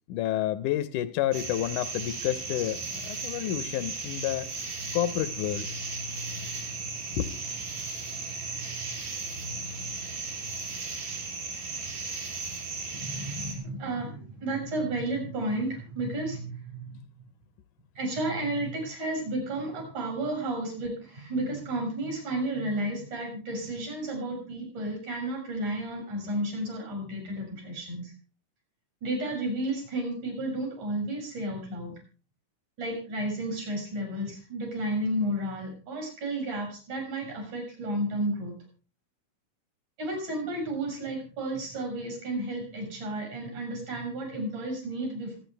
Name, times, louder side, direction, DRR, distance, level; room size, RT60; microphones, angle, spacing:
voice 1, 0.1-4.5 4.9-5.7 7.2-7.3, left 13 dB, 75° left, 2.2 m, -29 dB
sound 1, 1.3-13.5, right 3 dB, 80° right, 5.7 m, -36 dB
voice 2, 12.9-17.0 17.9-28.1 29.0-32.0 32.8-38.5 40.0-45.4, right 1 dB, 65° right, 8.1 m, -32 dB
25.5 x 9.7 x 3.4 m
omnidirectional pair, 3.7 m